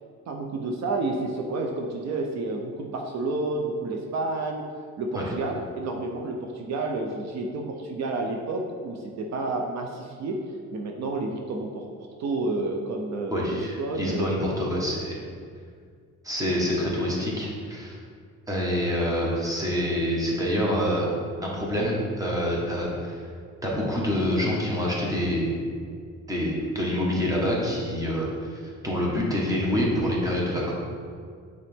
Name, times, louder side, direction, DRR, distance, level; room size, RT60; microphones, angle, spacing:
voice 1, 0.3-4.6 5.0-14.4, right 2 dB, 65° right, 2 dB, 0.7 m, -30 dB
voice 2, 13.3-15.2 16.2-18.0 18.5-21.1 21.4-23.2 23.6-25.6 26.3-30.7, equal, 10° right, -4 dB, 1.4 m, -26 dB
8.4 x 4.0 x 3.5 m, 2.1 s
cardioid pair, 140°, 29 cm